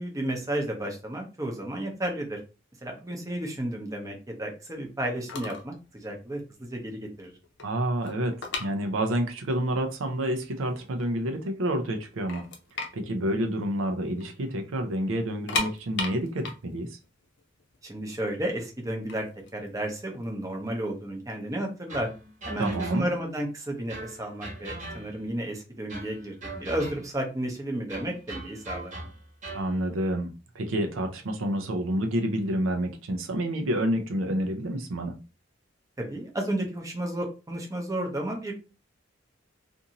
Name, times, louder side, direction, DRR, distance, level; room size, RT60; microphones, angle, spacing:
voice 1, 0.0-2.4 2.8-7.3 17.8-19.2 19.5-22.1 22.5-28.9 36.0-38.5, right 1 dB, 15° right, 0.6 m, -32 dB
sound 1, 5.3-5.7 6.0-6.2 6.8-6.9 7.1-9.4 9.7-9.8 10.4-10.5 10.8-11.6 11.9-12.0 12.3-14.3 14.6-14.7 15.3-18.2 18.9-20.6, left 4 dB, 65° left, 0.6 m, -35 dB
voice 2, 7.6-12.5 12.9-17.0 22.6-23.0 29.5-35.1, right 1 dB, 85° right, 0.5 m, -29 dB
sound 2, 21.9-23.3 23.9-25.4 25.9-27.3 27.9-29.7, right 2 dB, 40° right, 1.0 m, -40 dB
2.6 x 2.6 x 2.8 m
head